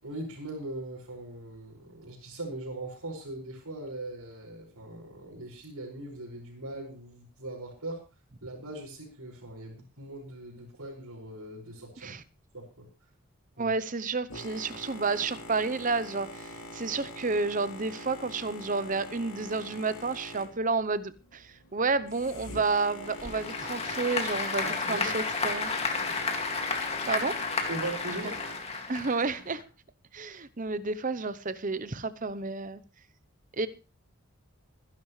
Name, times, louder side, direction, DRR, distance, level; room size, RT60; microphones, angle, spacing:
voice 1, 0.0-8.0 8.4-12.1 12.5-12.9 13.6-13.7 24.6-25.1 26.0-26.3 27.7-28.4, right 2 dB, 90° right, 5.8 m, -40 dB
voice 2, 13.6-25.7 27.1-27.4 28.9-29.6 30.1-32.8 33.5-33.7, right 4 dB, 35° right, 0.8 m, -31 dB
Boat Water vehicle, 14.3-28.6, left 1 dB, 70° left, 2.7 m, -44 dB
Applause / Crowd, 23.0-29.6, left 4 dB, 30° left, 2.2 m, -32 dB
24.0 x 11.0 x 3.2 m
head